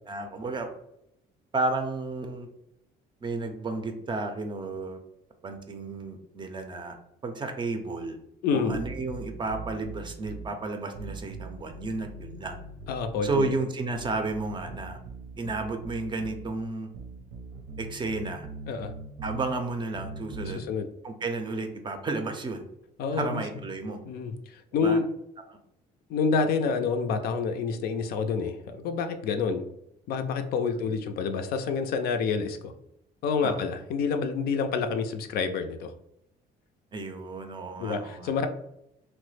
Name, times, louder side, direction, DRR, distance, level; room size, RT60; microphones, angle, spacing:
voice 1, 0.1-0.7 1.5-2.5 3.2-5.0 5.4-7.0 7.2-8.2 8.5-12.6 13.2-15.0 15.4-16.9 17.8-18.5 19.2-20.6 21.0-22.6 23.1-24.0 24.8-25.0 30.8-30.9 33.4-33.6 36.9-38.3, right 3 dB, 30° right, 6 dB, 0.4 m, -32 dB
voice 2, 8.4-8.8 12.9-13.6 18.7-18.9 20.4-20.9 23.0-23.4 24.1-25.1 26.1-29.6 30.1-32.7 33.2-35.9 37.8-38.5, left 5 dB, 65° left, 7 dB, 0.4 m, -28 dB
sound 1, 8.7-10.5 10.9-13.5 13.9-16.5 16.9-19.5 19.9-20.6, right 3 dB, 85° right, 0.6 m, -41 dB
3.0 x 2.1 x 3.1 m, 0.80 s
cardioid pair, 110°, 17 cm